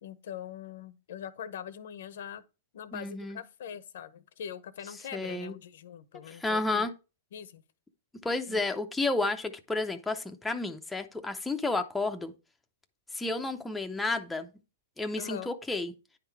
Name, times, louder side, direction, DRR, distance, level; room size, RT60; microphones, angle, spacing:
voice 1, 0.0-2.4 2.7-6.9 7.3-7.6 8.5-8.6 15.2-15.5, left 9 dB, 65° left, 0.7 m, -42 dB
voice 2, 2.9-3.4 5.1-5.5 6.3-6.9 8.2-12.3 13.1-14.5 15.0-15.9, left 2 dB, 5° left, 0.5 m, -31 dB
9.8 x 3.7 x 4.6 m
hypercardioid pair, 150°, 0 cm